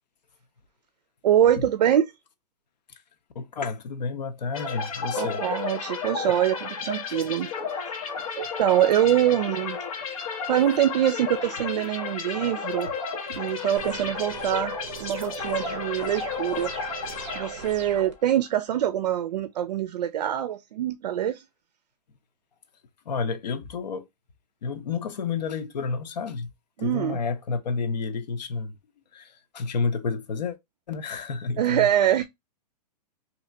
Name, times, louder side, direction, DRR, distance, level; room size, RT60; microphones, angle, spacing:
voice 1, 1.2-2.1 5.2-7.5 8.4-9.8 10.5-12.9 13.3-21.4 26.8-27.2 31.6-32.2, right 11 dB, 75° right, 0.5 m, -24 dB
voice 2, 3.3-5.4 7.1-7.2 23.1-24.0 24.6-26.5 26.8-28.8 29.1-30.6 30.9-31.9, left 4 dB, 80° left, 0.8 m, -30 dB
sound 1, 4.5-18.1, left 5 dB, 55° left, 1.0 m, -33 dB
sound 2, 13.8-18.1, right 8 dB, 45° right, 0.7 m, -40 dB
3.2 x 2.8 x 2.6 m
hypercardioid pair, 175°, 21 cm